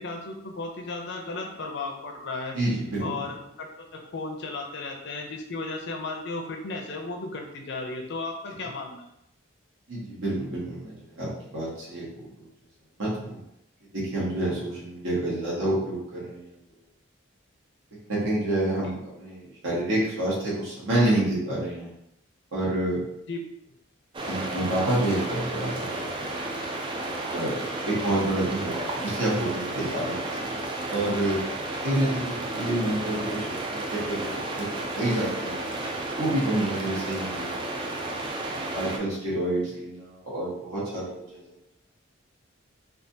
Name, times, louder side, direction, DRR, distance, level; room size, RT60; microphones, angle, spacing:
voice 1, 0.0-2.5 3.0-9.1 23.3-23.4 32.8-32.9, left 3 dB, 55° left, 1 dB, 0.6 m, -35 dB
voice 2, 2.5-3.2 9.9-12.5 13.0-13.4 13.9-16.5 17.9-21.9 22.5-23.0 24.3-26.3 27.3-31.4 31.8-34.3 34.5-35.6 36.2-37.6 38.7-41.4, right 1 dB, 70° right, -7 dB, 1.4 m, -28 dB
sound 1, 24.1-39.0, right 2 dB, 25° right, 0.3 m, -32 dB
3.5 x 2.4 x 2.6 m, 0.80 s
head